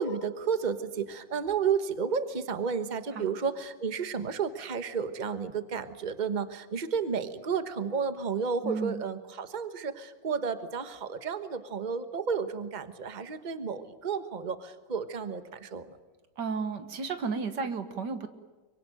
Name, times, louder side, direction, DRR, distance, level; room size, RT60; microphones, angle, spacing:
voice 1, 0.0-16.0, right 6 dB, 30° right, 10 dB, 1.3 m, -32 dB
voice 2, 8.6-9.0 16.4-18.3, right 5 dB, 90° right, 9 dB, 2.1 m, -33 dB
25.0 x 23.5 x 9.2 m, 1.2 s
omnidirectional pair, 1.8 m